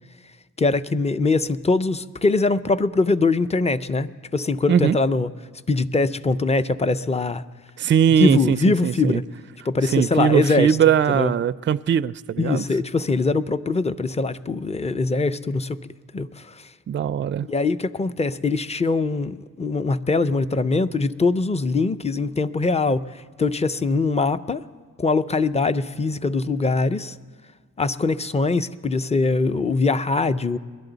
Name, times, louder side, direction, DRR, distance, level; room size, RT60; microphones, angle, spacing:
voice 1, 0.6-5.3 5.7-7.4 8.2-9.2 9.7-10.8 11.1-11.3 12.4-15.8 16.1-16.7 17.5-24.6 25.0-27.2 27.8-30.6, left 3 dB, 20° left, 14 dB, 0.5 m, -22 dB
voice 2, 7.8-9.2 9.8-12.6 16.9-17.5, right 8 dB, 35° right, 17 dB, 0.4 m, -20 dB
22.0 x 11.0 x 4.0 m, 1.5 s
supercardioid pair, 50°, 36 cm